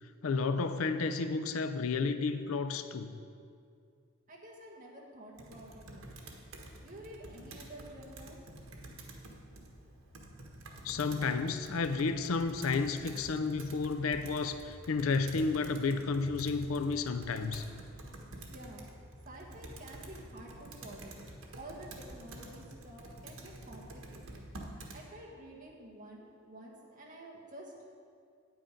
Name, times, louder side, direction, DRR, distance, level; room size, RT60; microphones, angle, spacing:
voice 1, 0.2-3.2 10.8-17.7, left 4 dB, 85° left, 10 dB, 0.5 m, -32 dB
voice 2, 4.3-6.4 6.8-8.4 18.5-18.9 19.2-21.2 21.5-24.5 24.9-27.8, right 1 dB, 40° right, -2 dB, 1.6 m, -50 dB
Computer keyboard, 5.4-25.0, right 1 dB, 85° right, 1.3 m, -49 dB
9.1 x 8.9 x 5.1 m, 2.3 s
head